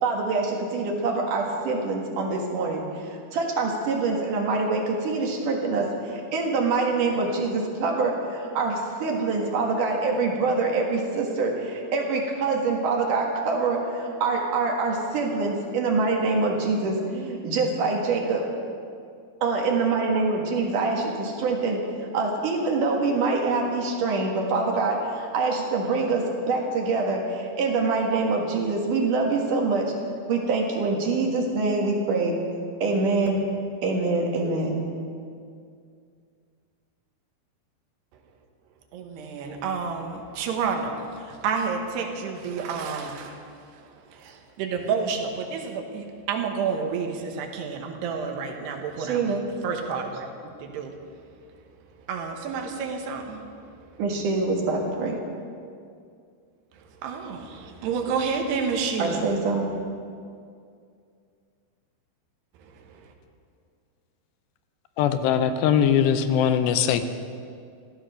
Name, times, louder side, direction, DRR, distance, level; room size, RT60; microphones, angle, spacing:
voice 1, 0.0-18.4 19.4-21.8 22.1-29.9 30.3-32.4 32.8-33.4 33.8-34.8 49.0-49.4 54.0-55.2 59.0-59.7, right 3 dB, 60° right, 0 dB, 2.9 m, -25 dB
voice 2, 38.9-43.4 43.7-49.2 49.6-50.3 50.6-50.9 52.1-53.4 57.0-59.3 62.6-62.8, right 5 dB, 80° right, 3 dB, 3.3 m, -30 dB
voice 3, 65.0-67.1, left 8 dB, 85° left, 9 dB, 2.9 m, -21 dB
14.5 x 14.0 x 6.6 m, 2.3 s
omnidirectional pair, 4.9 m